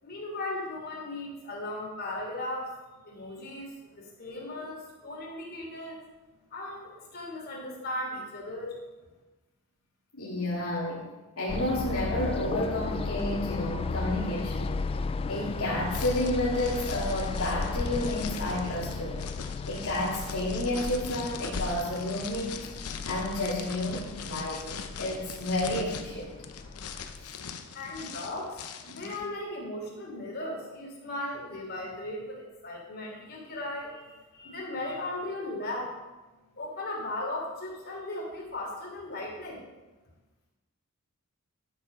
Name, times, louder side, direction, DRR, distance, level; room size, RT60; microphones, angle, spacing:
voice 1, 0.0-2.7 3.0-6.0 6.5-8.8 27.7-36.0 36.6-39.7, left 1 dB, 45° left, -2 dB, 3.2 m, -37 dB
voice 2, 10.1-11.1 11.4-14.8 15.3-19.2 19.7-22.7 23.1-26.3 27.2-27.3 28.9-29.1, left 1 dB, 75° left, -5 dB, 2.2 m, -31 dB
sound 1, 11.5-27.3, left 4 dB, 25° left, 0.3 m, -35 dB
sound 2, 15.9-29.3, left 6 dB, 90° left, 0.8 m, -42 dB
11.5 x 7.2 x 5.5 m, 1.1 s
head